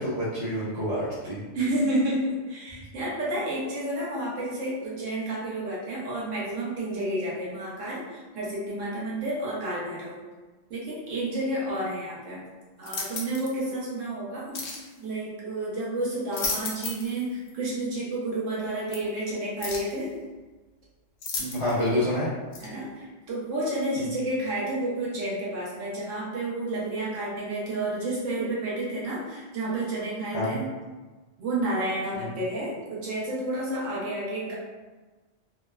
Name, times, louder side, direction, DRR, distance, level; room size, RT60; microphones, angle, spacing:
voice 1, 0.0-1.4 21.4-22.3 24.0-24.1 30.3-30.6 32.1-32.2, left 1 dB, 45° left, -11 dB, 0.4 m, -28 dB
voice 2, 1.5-10.2 10.7-12.5 12.8-14.6 15.0-20.1 22.6-30.7 31.4-34.5, right 1 dB, 85° right, -6 dB, 1.2 m, -30 dB
sound 1, 12.8-13.5 14.5-14.9 16.1-17.2 17.5-17.6 18.9-19.0 19.6-20.0 21.2-21.9 22.5-22.7, left 3 dB, 90° left, 0.9 m, -33 dB
3.2 x 2.0 x 2.2 m, 1.3 s
omnidirectional pair, 1.3 m